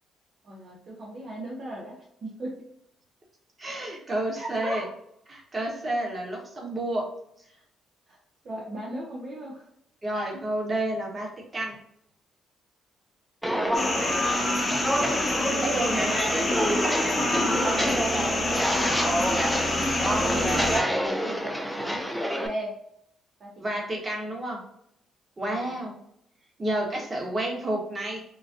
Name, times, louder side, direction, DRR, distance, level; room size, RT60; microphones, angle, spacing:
voice 1, 0.4-2.6 4.3-4.9 7.5-7.6 8.1-8.2 8.4-9.6 10.1-10.4 13.5-13.7 13.9-14.3 16.1-16.5 17.3-19.7 20.1-20.9 21.1-22.1 22.4-22.7 23.4-23.9 25.5-25.8, right 1 dB, 50° right, -4 dB, 0.8 m, -37 dB
voice 2, 3.6-4.8 5.3-7.0 10.0-11.8 15.6-16.2 23.6-24.6 25.4-26.0 26.6-28.2, right 1 dB, 30° right, -2 dB, 1.2 m, -30 dB
Walk footsteps, 13.4-22.5, equal, 5° right, 0.5 m, -27 dB
sound 1, 13.7-20.8, left 2 dB, 35° left, 1.0 m, -27 dB
3.9 x 2.2 x 2.5 m, 0.73 s
cardioid pair, 90°, 0 cm